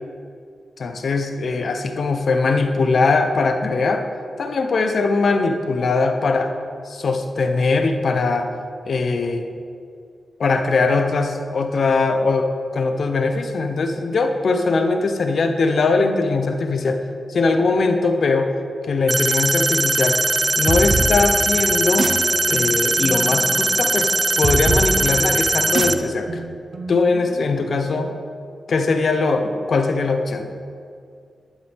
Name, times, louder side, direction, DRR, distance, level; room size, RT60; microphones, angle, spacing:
voice 1, 0.8-4.1 4.4-6.5 6.8-8.5 8.8-9.4 10.4-17.0 17.3-18.5 18.8-20.2 20.6-22.1 22.5-24.1 24.4-26.4 26.9-28.1 28.7-30.5, left 3 dB, 70° left, 6 dB, 1.0 m, -20 dB
sound 1, 19.1-25.9, right 2 dB, 25° right, 0.6 m, -20 dB
sound 2, 20.7-28.0, right 3 dB, 60° right, 1.0 m, -27 dB
12.0 x 11.0 x 3.7 m, 2.3 s
cardioid pair, 60°, 0 cm